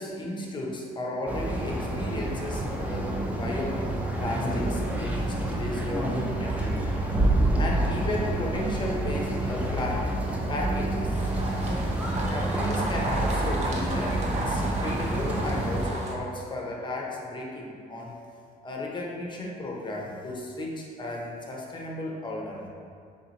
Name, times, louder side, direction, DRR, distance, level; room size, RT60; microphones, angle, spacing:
voice 1, 0.0-3.8 4.2-6.9 7.6-10.1 10.5-11.2 11.5-12.0 12.3-18.1 18.6-22.7, left 1 dB, 30° left, -2 dB, 0.7 m, -34 dB
sound 1, 1.3-15.9, right 1 dB, 10° right, 0.5 m, -28 dB
sound 2, 11.1-16.1, right 1 dB, 40° right, 0.7 m, -34 dB
3.8 x 2.8 x 3.9 m, 2.2 s
cardioid pair, 110°, 17 cm